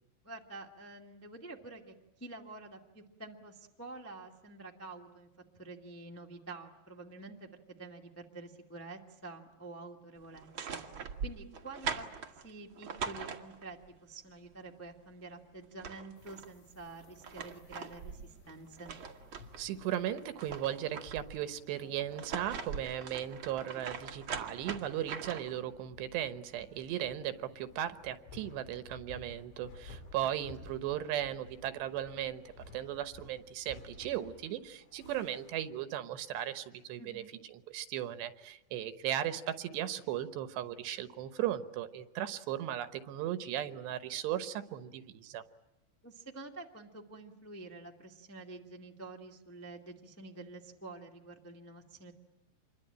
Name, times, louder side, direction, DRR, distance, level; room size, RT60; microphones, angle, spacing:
voice 1, 0.2-5.3 5.5-7.5 7.8-12.1 12.3-18.9 30.2-30.3 37.0-37.3 46.0-52.1, right 3 dB, 15° left, 1 dB, 0.5 m, -48 dB
sound 1, 10.3-13.9 15.3-15.4 15.6-16.5 17.0-19.7 20.1-21.4 22.0-25.6, right 6 dB, 55° right, 1.4 m, -42 dB
sound 2, 16.2-35.7, left 2 dB, 85° left, 5.4 m, -56 dB
voice 2, 19.6-37.2 37.5-45.4, right 11 dB, 85° right, 11 dB, 3.3 m, -37 dB
27.0 x 22.5 x 8.9 m, 1.0 s
omnidirectional pair, 4.8 m